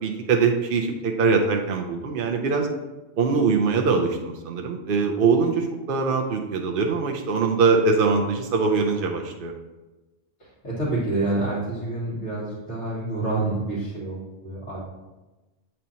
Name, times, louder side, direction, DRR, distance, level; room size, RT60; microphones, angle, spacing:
voice 1, 0.0-2.7 3.2-9.5, right 4 dB, 55° right, 2 dB, 0.7 m, -22 dB
voice 2, 10.6-14.8, right 2 dB, 65° left, -12 dB, 2.1 m, -27 dB
8.6 x 4.3 x 2.7 m, 1.1 s
omnidirectional pair, 1.2 m